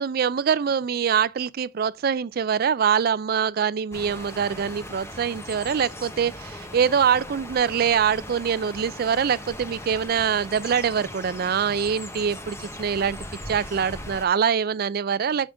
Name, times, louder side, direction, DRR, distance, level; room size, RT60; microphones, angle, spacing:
voice 1, 0.0-13.2 13.5-15.5, right 7 dB, 50° right, 0.3 m, -24 dB
sound 1, 3.9-14.3, left 1 dB, 15° left, 0.7 m, -39 dB
6.3 x 5.1 x 3.4 m
head